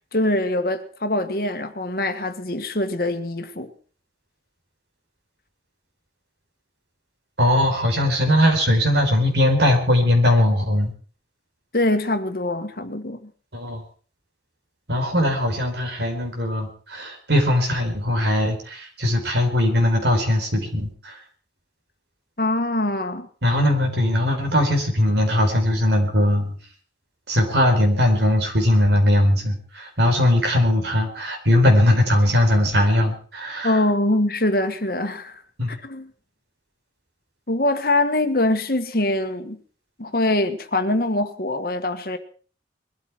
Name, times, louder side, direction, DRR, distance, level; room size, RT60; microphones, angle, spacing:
voice 1, 0.1-3.7 11.7-13.3 22.4-23.3 33.6-35.4 35.7-36.1 37.5-39.6 40.0-42.2, left 1 dB, 55° left, 1.6 m, -23 dB
voice 2, 7.4-10.9 13.5-13.8 14.9-21.2 23.4-26.5 27.3-33.8 35.6-35.8, left 1 dB, 75° right, 4.5 m, -20 dB
21.5 x 13.0 x 4.6 m
head